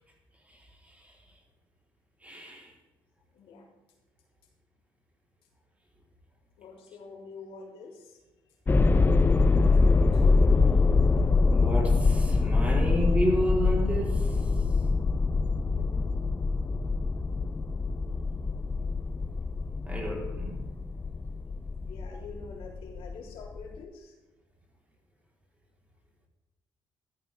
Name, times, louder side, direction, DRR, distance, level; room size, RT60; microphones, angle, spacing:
voice 1, 0.5-1.1 2.2-2.7 11.1-14.7 19.8-20.8, equal, 15° right, 4.0 m, -32 dB
voice 2, 3.3-3.7 6.6-8.2 9.7-10.3 15.7-16.2 21.8-24.1, left 4 dB, 90° left, 3.7 m, -46 dB
sound 1, 8.7-23.8, left 3 dB, 20° left, 0.7 m, -24 dB
15.0 x 12.5 x 3.6 m
cardioid pair, 120°, 9 cm